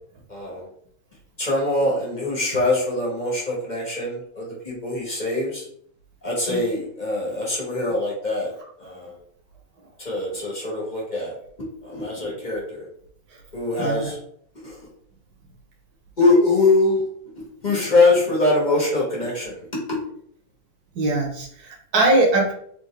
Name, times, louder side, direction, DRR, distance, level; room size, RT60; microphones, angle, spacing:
voice 1, 0.3-0.7 1.4-5.7 6.2-8.5 8.8-9.1 10.0-11.4 11.8-12.9 13.5-14.2 14.6-14.9 16.2-17.0 17.3-19.6 19.9-20.0, left 2 dB, 30° left, -4 dB, 1.5 m, -23 dB
voice 2, 13.8-14.1 20.9-22.5, right 2 dB, 85° right, -1 dB, 1.7 m, -21 dB
3.9 x 3.6 x 3.3 m, 0.64 s
omnidirectional pair, 1.5 m